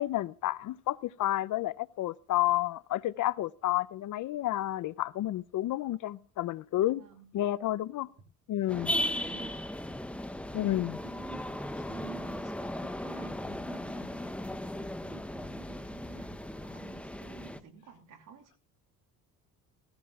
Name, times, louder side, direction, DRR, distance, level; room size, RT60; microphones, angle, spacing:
voice 1, 0.0-7.0 7.3-8.1 8.5-8.9 10.5-11.0, left 14 dB, 60° left, 0.5 m, -30 dB
voice 2, 6.7-7.3 8.7-9.6 11.0-18.6, right 6 dB, 65° right, 2.5 m, -52 dB
sound 1, 8.7-17.6, left 1 dB, 5° left, 0.7 m, -37 dB
17.5 x 14.0 x 2.3 m
cardioid pair, 105°, 34 cm